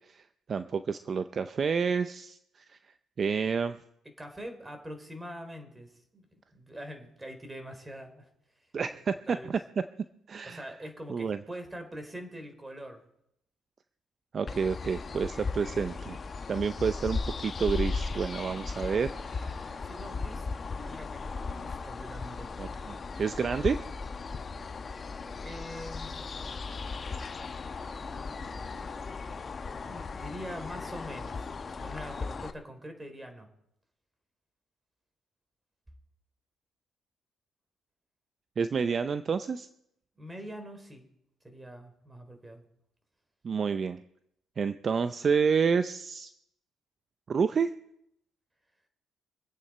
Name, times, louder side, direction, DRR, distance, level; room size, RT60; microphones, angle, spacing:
voice 1, 0.1-2.4 2.7-2.8 3.2-3.8 8.7-9.6 10.3-10.6 11.1-11.4 14.3-16.2 16.5-19.9 22.6-23.8 38.6-39.7 43.4-44.0 44.6-46.3 47.3-47.7, right 6 dB, 45° right, 11 dB, 0.6 m, -29 dB
voice 2, 4.0-6.2 6.5-8.3 8.6-9.5 10.4-13.0 19.8-20.5 20.7-22.6 25.4-26.2 28.0-29.2 29.8-31.5 31.8-33.5 40.2-41.0 41.4-42.6, equal, 15° right, 6 dB, 3.7 m, -44 dB
sound 1, 14.5-32.5, left 4 dB, 40° left, 1.1 m, -37 dB
25.0 x 8.6 x 4.3 m, 0.75 s
supercardioid pair, 65°, 0 cm